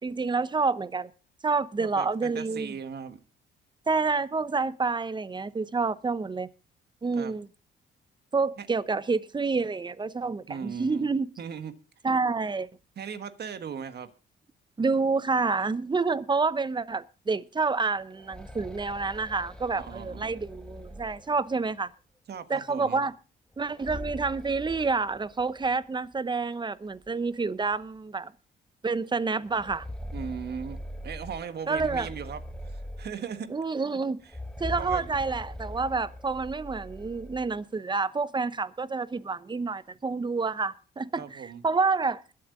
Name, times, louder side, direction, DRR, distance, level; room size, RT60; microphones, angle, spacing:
voice 1, 0.0-1.1 1.4-2.7 3.9-6.5 7.0-7.5 8.3-11.3 12.0-12.7 14.8-21.9 22.5-23.1 23.6-28.3 28.8-29.8 31.7-32.1 33.5-34.2 34.6-42.2, right 4 dB, 25° right, 0.9 m, -28 dB
voice 2, 1.8-3.2 7.1-7.4 8.6-8.7 10.5-11.1 11.4-11.7 12.9-14.1 19.7-20.4 22.3-23.0 30.1-33.5 34.8-35.1 41.2-41.6, right 7 dB, 55° right, 1.7 m, -38 dB
sound 1, 18.1-21.8 23.5-25.7 26.1-26.2 27.0-27.1 27.6-27.8 29.4-33.5 34.2-37.6, left 1 dB, 5° left, 1.7 m, -41 dB
21.5 x 8.1 x 3.9 m
cardioid pair, 90°, 20 cm